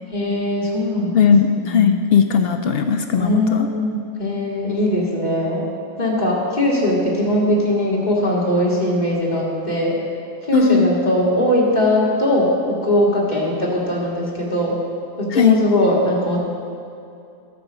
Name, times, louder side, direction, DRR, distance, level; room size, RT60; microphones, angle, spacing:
voice 1, 0.1-1.3 1.6-2.0 3.1-5.6 6.0-9.9 10.5-12.5 12.8-14.7 15.2-16.4, left 1 dB, 35° left, -4 dB, 2.0 m, -20 dB
voice 2, 1.1-3.7 10.5-10.9 15.3-15.6, left 6 dB, 65° left, 6 dB, 0.6 m, -17 dB
11.5 x 5.1 x 7.2 m, 2.5 s
omnidirectional pair, 1.4 m